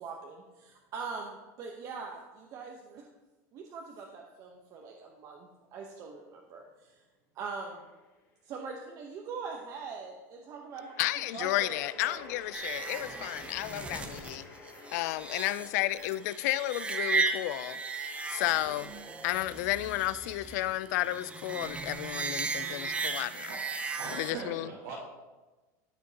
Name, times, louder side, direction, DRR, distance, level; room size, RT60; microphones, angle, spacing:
voice 1, 0.0-3.1 3.5-7.0 7.3-7.8 8.4-12.3, right 5 dB, 40° right, 0.8 m, -42 dB
sound 1, 7.6-8.2 10.7-22.1, left 4 dB, 35° left, 1.5 m, -53 dB
voice 2, 11.0-14.4 14.9-17.8 18.3-18.9 19.2-23.5 24.1-24.7, left 16 dB, 75° left, 0.4 m, -32 dB
sound 2, 12.5-24.3, right 4 dB, 15° right, 0.6 m, -36 dB
voice 3, 23.5-25.1, right 4 dB, 75° right, 1.5 m, -41 dB
13.5 x 5.2 x 2.8 m
supercardioid pair, 145°, 9 cm